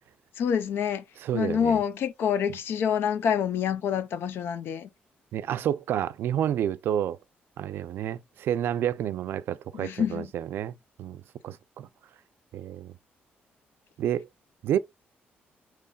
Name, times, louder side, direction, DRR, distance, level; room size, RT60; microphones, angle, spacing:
voice 1, 0.4-1.0 1.3-4.9 9.7-10.3, left 8 dB, 70° left, 0.6 m, -27 dB
voice 2, 1.2-1.8 5.3-7.2 7.6-10.7 11.0-11.9 12.5-12.9 14.0-14.3 14.6-14.8, right 10 dB, 70° right, 0.4 m, -29 dB
6.8 x 3.0 x 2.3 m
cardioid pair, 145°, 4 cm